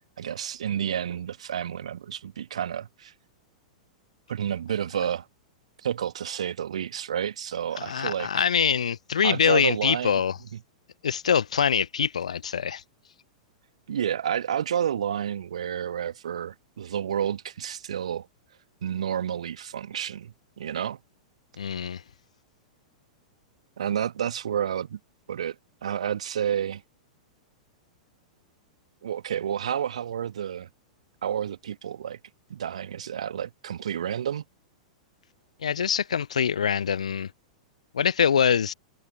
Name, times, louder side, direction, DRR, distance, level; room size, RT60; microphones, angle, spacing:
voice 1, 0.0-3.1 4.3-5.3 5.8-8.3 9.2-10.2 13.9-18.3 18.8-21.0 23.8-25.0 25.3-25.6 25.8-26.8 29.0-30.7 31.2-32.2 32.5-34.4, right 9 dB, 60° right, 1.7 m, -30 dB
voice 2, 7.8-10.4 11.0-12.8 21.6-22.0 35.6-37.3 37.9-38.7, left 7 dB, 65° left, 0.6 m, -24 dB
figure-of-eight pair, 100°, 4 cm